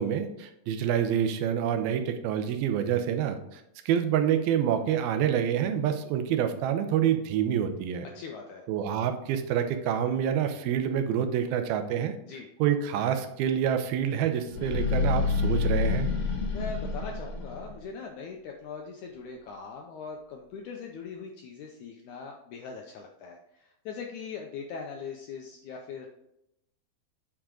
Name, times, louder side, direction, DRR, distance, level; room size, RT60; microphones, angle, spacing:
voice 1, 0.0-8.1 8.7-12.1 12.6-16.1, right 9 dB, 85° right, 7 dB, 2.6 m, -27 dB
voice 2, 8.1-8.7 12.3-12.5 16.5-26.1, left 5 dB, 80° left, 2 dB, 1.7 m, -41 dB
sound 1, 14.5-17.8, left 5 dB, 55° left, 1.2 m, -28 dB
8.5 x 4.8 x 3.7 m, 0.83 s
omnidirectional pair, 4.2 m